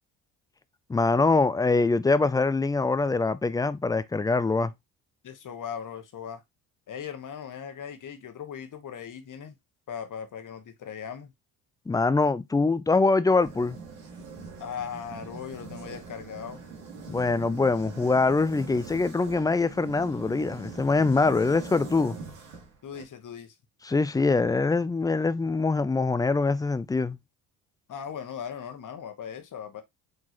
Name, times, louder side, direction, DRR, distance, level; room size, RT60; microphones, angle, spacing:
voice 1, 0.9-4.7 11.9-13.8 17.1-22.2 23.9-27.2, left 3 dB, 10° left, 0.3 m, -24 dB
voice 2, 5.2-6.4 6.9-9.6 9.9-11.3 14.6-16.6 22.8-23.5 27.9-29.8, left 8 dB, 45° left, 1.2 m, -38 dB
sound 1, 13.4-23.0, right 4 dB, 75° right, 2.1 m, -42 dB
5.0 x 3.8 x 2.8 m
hypercardioid pair, 65°, 44 cm